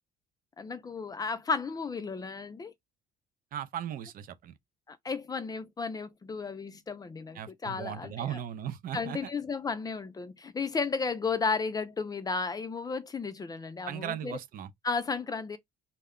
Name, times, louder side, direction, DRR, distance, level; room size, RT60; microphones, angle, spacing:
voice 1, 0.6-2.7 4.9-8.4 8.9-14.4 14.8-15.6, left 4 dB, 20° left, 0.4 m, -33 dB
voice 2, 3.5-4.5 7.3-9.3 13.9-14.7, right 10 dB, 55° right, 0.5 m, -37 dB
2.2 x 2.1 x 3.5 m
cardioid pair, 110°, 17 cm